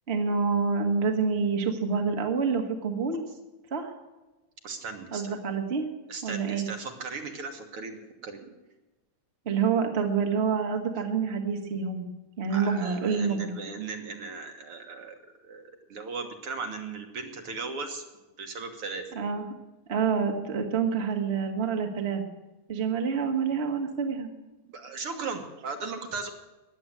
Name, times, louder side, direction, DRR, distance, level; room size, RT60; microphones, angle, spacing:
voice 1, 0.1-3.2 3.7-3.9 5.1-5.8 6.2-6.7 9.4-12.1 12.4-13.6 19.1-19.5 19.9-22.2 22.7-24.3, right 5 dB, 30° right, 3 dB, 1.2 m, -27 dB
voice 2, 4.6-5.4 6.1-8.5 12.5-15.2 15.4-18.0 18.4-19.0 24.7-26.3, right 4 dB, 55° right, 5 dB, 2.1 m, -37 dB
15.0 x 10.5 x 7.5 m, 1.1 s
omnidirectional pair, 3.3 m